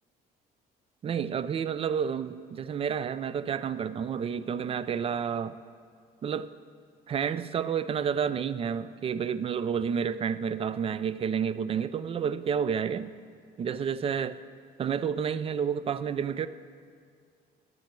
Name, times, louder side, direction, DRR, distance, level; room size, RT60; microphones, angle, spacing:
voice 1, 1.0-5.6 6.2-6.5 7.1-13.1 13.6-14.4 14.8-16.5, right 7 dB, 35° right, 14 dB, 0.4 m, -30 dB
12.0 x 5.9 x 7.6 m, 2.2 s
cardioid pair, 110°, 17 cm